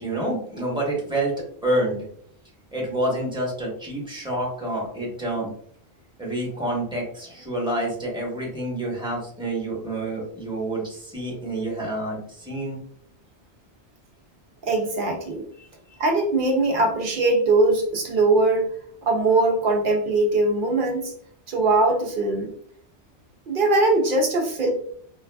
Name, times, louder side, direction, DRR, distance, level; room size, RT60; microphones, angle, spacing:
voice 1, 0.0-1.3 1.6-2.1 2.7-5.5 6.2-12.8 15.6-15.7, right 1 dB, 5° right, -3 dB, 1.0 m, -28 dB
voice 2, 14.6-15.4 16.0-18.7 19.0-21.1 21.5-22.5 23.5-24.7, right 2 dB, 60° right, 2 dB, 0.7 m, -21 dB
3.9 x 2.3 x 2.2 m, 0.63 s
omnidirectional pair, 1.2 m